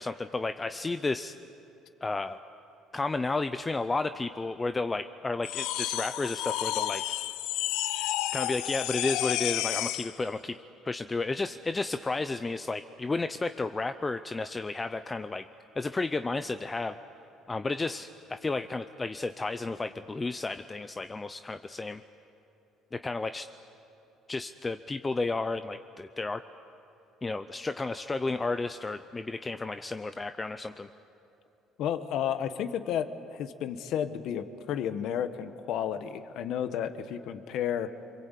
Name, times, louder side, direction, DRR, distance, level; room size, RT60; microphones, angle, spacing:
voice 1, 0.0-1.3 2.0-2.4 2.9-7.0 8.3-10.6 10.8-15.4 15.8-17.0 17.5-22.0 22.9-23.5 24.3-26.4 27.2-30.9, left 3 dB, 15° left, 10 dB, 0.5 m, -32 dB
sound 1, 5.4-10.2, left 15 dB, 90° left, 0.6 m, -31 dB
voice 2, 31.8-37.9, left 9 dB, 60° left, 10 dB, 1.4 m, -32 dB
29.0 x 23.0 x 8.3 m, 2.9 s
cardioid pair, 145°, 0 cm